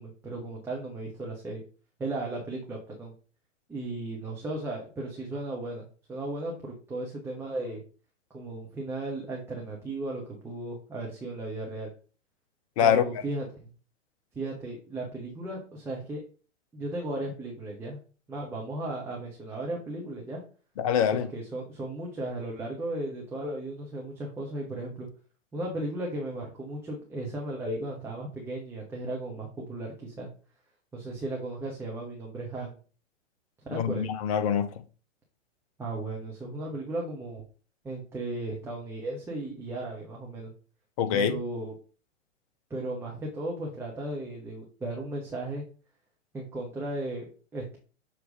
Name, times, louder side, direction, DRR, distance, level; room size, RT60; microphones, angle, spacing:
voice 1, 0.0-1.6 2.0-3.1 3.7-7.8 8.3-11.9 12.8-13.7 14.3-16.2 16.7-18.0 18.3-20.4 21.1-25.1 25.5-30.3 30.9-32.8 33.6-34.0 35.8-37.4 37.8-40.5 41.1-41.7 42.7-45.6 46.3-47.8, right 2 dB, 5° right, 1.0 m, -35 dB
voice 2, 20.8-21.3 33.7-34.7 41.0-41.3, left 8 dB, 30° left, 0.6 m, -24 dB
6.8 x 3.1 x 5.1 m
figure-of-eight pair, 110°, 37 cm